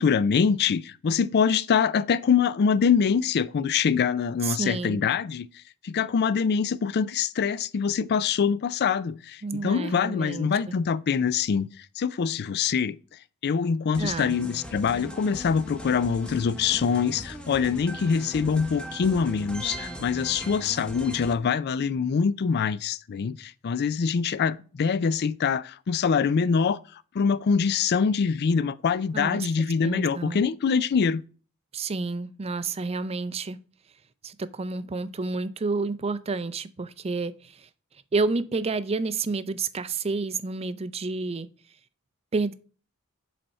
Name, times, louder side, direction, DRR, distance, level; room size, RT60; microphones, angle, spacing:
voice 1, 0.0-5.5 5.8-11.7 12.0-13.0 13.4-26.8 27.1-31.2, left 6 dB, 50° left, 0.4 m, -24 dB
voice 2, 4.4-5.0 9.4-10.7 14.0-14.3 29.1-29.5 29.8-30.4 31.7-33.6 34.2-37.7 38.1-41.5 42.3-42.5, right 3 dB, 25° right, 0.4 m, -30 dB
sound 1, 13.9-21.3, equal, 5° left, 0.9 m, -39 dB
7.8 x 4.2 x 4.4 m
head